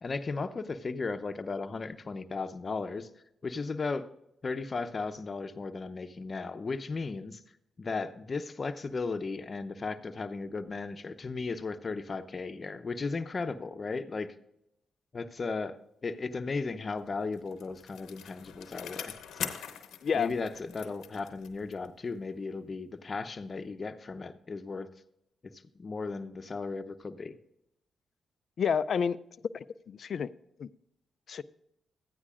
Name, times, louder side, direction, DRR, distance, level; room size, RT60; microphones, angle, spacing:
voice 1, 0.0-3.1 3.4-4.1 4.4-7.4 7.8-14.3 15.1-15.8 16.0-19.6 20.1-24.9 25.4-27.3, left 4 dB, 45° left, 10 dB, 0.8 m, -36 dB
Bicycle, 17.1-22.0 22.3-22.4, left 8 dB, 85° left, 0.8 m, -43 dB
voice 2, 20.0-20.3 28.6-29.2 29.5-30.3 30.6-30.7 31.3-31.4, left 6 dB, 65° left, 16 dB, 0.4 m, -29 dB
14.5 x 9.7 x 2.5 m, 0.81 s
supercardioid pair, 50°, 0 cm